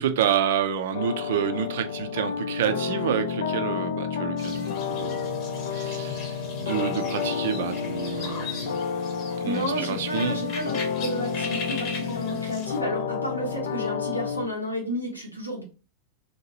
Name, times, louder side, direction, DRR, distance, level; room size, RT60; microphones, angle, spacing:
voice 1, 0.0-5.2 5.7-8.8 9.4-10.4, right 9 dB, 55° right, 0.4 m, -28 dB
sound 1, 0.9-14.5, left 6 dB, 60° left, 0.4 m, -30 dB
sound 2, 4.4-12.8, left 5 dB, 40° left, 0.9 m, -38 dB
voice 2, 9.4-15.6, equal, 85° left, 1.1 m, -32 dB
2.9 x 2.8 x 2.8 m
figure-of-eight pair, 90°, 0 cm